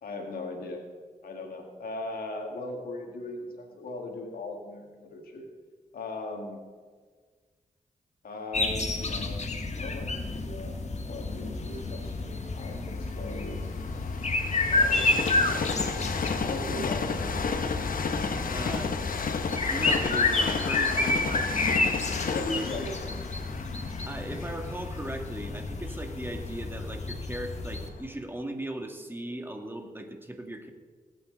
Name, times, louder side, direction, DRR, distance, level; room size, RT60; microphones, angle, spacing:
voice 1, 0.0-0.8 1.2-5.5 5.9-6.6 8.2-10.8 11.0-13.6 14.7-15.1 16.4-17.2 22.2-22.9 23.3-23.5, left 2 dB, 85° left, 2 dB, 1.9 m, -38 dB
sound 1, 8.5-27.9, left 3 dB, 50° left, 1.5 m, -30 dB
Train, 11.4-27.3 27.9-28.0, left 5 dB, 70° left, 1.0 m, -33 dB
voice 2, 18.5-18.9 19.7-21.5 22.5-22.6 24.1-30.7, right 1 dB, 15° right, 4 dB, 2.0 m, -38 dB
19.5 x 8.8 x 3.9 m, 1.5 s
cardioid pair, 50°, 15 cm